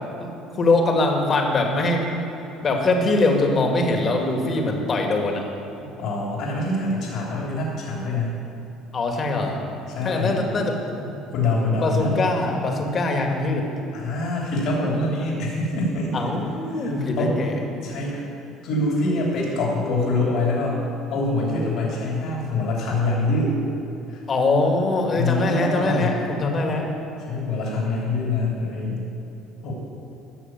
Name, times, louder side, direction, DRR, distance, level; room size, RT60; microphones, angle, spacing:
voice 1, 0.6-2.1 2.6-5.4 8.9-9.6 10.0-11.1 11.8-13.7 16.1-17.6 24.3-26.9, left 2 dB, 40° left, 2 dB, 2.3 m, -22 dB
voice 2, 5.8-8.4 9.9-10.4 11.3-12.2 13.9-16.3 16.7-16.9 17.2-17.3 17.8-18.2 18.6-20.8 21.1-23.6 24.1-24.2 25.1-26.2 27.3-29.0 29.6-29.7, left 2 dB, 65° left, -3 dB, 3.1 m, -25 dB
14.5 x 6.6 x 7.5 m, 3.0 s
hypercardioid pair, 65°, 0 cm